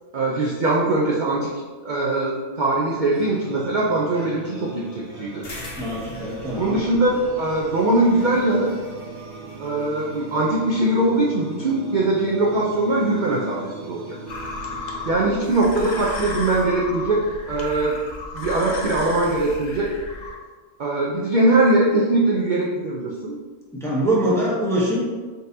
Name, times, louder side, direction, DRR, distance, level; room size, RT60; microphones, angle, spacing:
voice 1, 0.1-1.5 1.8-5.4 6.5-8.7 9.6-13.6 13.9-14.2 15.1-18.0 18.3-19.9 20.8-23.4, right 2 dB, 65° right, -4 dB, 0.4 m, -21 dB
sound 1, 3.1-16.0, right 3 dB, 85° right, 1.5 m, -40 dB
sound 2, 5.4-10.3, left 1 dB, 40° left, 0.8 m, -43 dB
voice 2, 5.8-6.8 23.7-25.1, right 1 dB, 5° left, -5 dB, 0.5 m, -23 dB
sound 3, 14.3-20.4, left 2 dB, 65° left, 0.4 m, -33 dB
4.0 x 3.6 x 2.7 m, 1.4 s
omnidirectional pair, 1.4 m